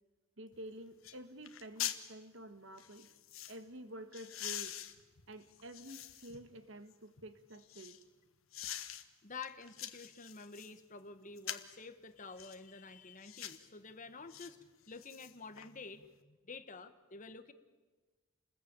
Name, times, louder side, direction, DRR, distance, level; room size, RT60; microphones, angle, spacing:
voice 1, 0.4-3.1 3.5-4.9 5.3-8.0, right 1 dB, 65° right, 10 dB, 1.7 m, -50 dB
sound 1, 0.5-0.6 1.0-1.2 1.4-2.0 2.8-3.6 4.1-6.4 6.9-8.0 8.5-9.0 9.4-10.7 11.4-11.8 12.4-12.6 13.2-13.6 14.3-14.5 14.9-15.7 16.0-16.1, left 11 dB, 85° left, 1.5 m, -44 dB
voice 2, 8.9-17.5, left 4 dB, 40° left, 10 dB, 1.3 m, -50 dB
29.5 x 21.0 x 8.9 m, 1.3 s
head